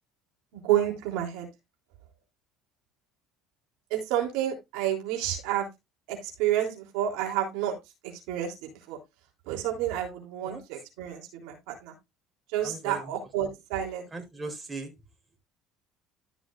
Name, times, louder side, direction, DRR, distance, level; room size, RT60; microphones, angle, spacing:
voice 1, 0.5-1.5 3.9-5.7 6.1-7.8 8.3-9.0 9.5-11.9 12.5-14.0, right 11 dB, 80° right, 1 dB, 3.4 m, -30 dB
voice 2, 12.6-13.1 14.1-14.9, right 3 dB, 15° right, 3 dB, 4.1 m, -38 dB
13.5 x 6.2 x 2.6 m, 0.21 s
supercardioid pair, 90°, 0 cm